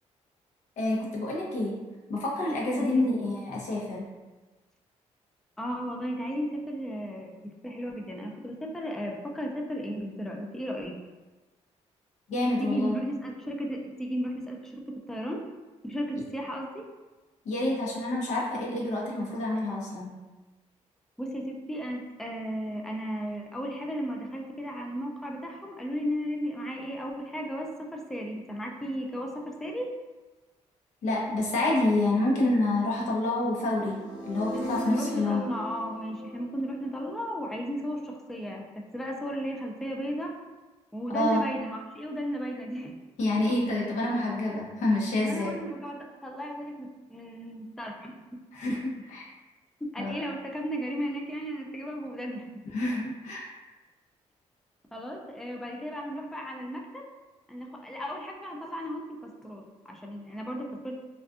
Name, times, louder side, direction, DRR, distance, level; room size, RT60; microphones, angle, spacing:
voice 1, 0.8-1.7 2.1-4.0 12.3-12.9 17.5-20.1 31.0-34.0 34.2-35.4 41.1-41.4 43.2-45.6 48.5-49.2 50.0-50.2 52.7-53.4, left 2 dB, 75° left, -3 dB, 0.7 m, -27 dB
voice 2, 2.8-3.1 5.6-10.9 12.6-14.8 15.1-15.4 15.8-16.9 21.2-29.9 34.8-38.7 38.9-40.3 40.9-42.9 44.5-44.6 45.2-48.2 49.8-52.5 54.9-57.1 57.5-60.9, equal, 5° left, 1 dB, 0.3 m, -35 dB
sound 1, 33.6-37.7, equal, 40° left, 0.7 m, -39 dB
2.4 x 2.3 x 2.4 m, 1.2 s
cardioid pair, 85°, 12 cm